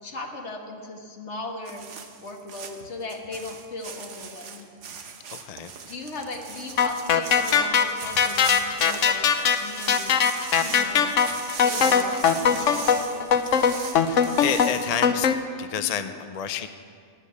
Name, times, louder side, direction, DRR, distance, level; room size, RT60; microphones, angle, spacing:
voice 1, 0.0-1.8 2.2-4.7 5.8-9.3 9.6-10.1 10.5-11.2 11.6-13.3, left 2 dB, 65° left, 3 dB, 1.7 m, -37 dB
sound 1, 1.7-15.0, right 6 dB, 75° right, 1.3 m, -39 dB
voice 2, 5.3-5.7 14.0-15.3 15.6-16.7, left 8 dB, 45° left, 9 dB, 0.5 m, -29 dB
sound 2, 6.8-15.3, left 7 dB, 85° left, 1.1 m, -21 dB
11.5 x 10.0 x 8.4 m, 2.1 s
omnidirectional pair, 1.3 m